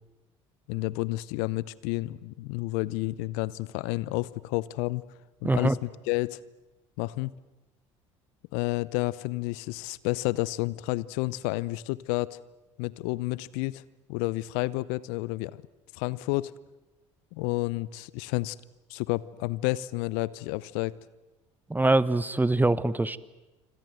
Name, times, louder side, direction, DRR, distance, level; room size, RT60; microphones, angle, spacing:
voice 1, 0.7-5.0 5.4-6.4 7.0-7.3 8.5-12.4 12.8-13.8 14.1-15.6 15.9-16.5 17.3-18.6 18.9-20.9, left 20 dB, 65° left, 21 dB, 0.8 m, -30 dB
voice 2, 5.4-5.8 21.7-23.2, right 2 dB, 10° right, 17 dB, 1.3 m, -23 dB
26.5 x 26.0 x 7.8 m, 1.1 s
hypercardioid pair, 60°, 16 cm